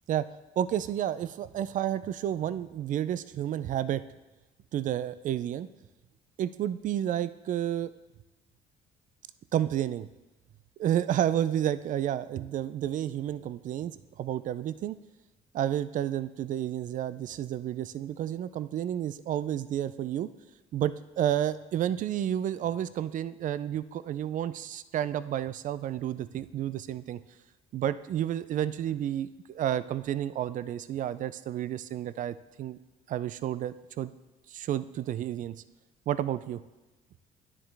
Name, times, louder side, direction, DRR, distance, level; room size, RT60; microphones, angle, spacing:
voice 1, 0.6-4.0 4.7-5.7 6.4-7.9 9.5-10.1 10.8-15.0 15.5-20.3 20.7-27.2 27.7-32.8 33.1-34.1 34.5-35.6 36.1-36.6, right 11 dB, 50° right, 15 dB, 0.4 m, -31 dB
10.0 x 7.2 x 3.4 m, 1.1 s
cardioid pair, 110°, 17 cm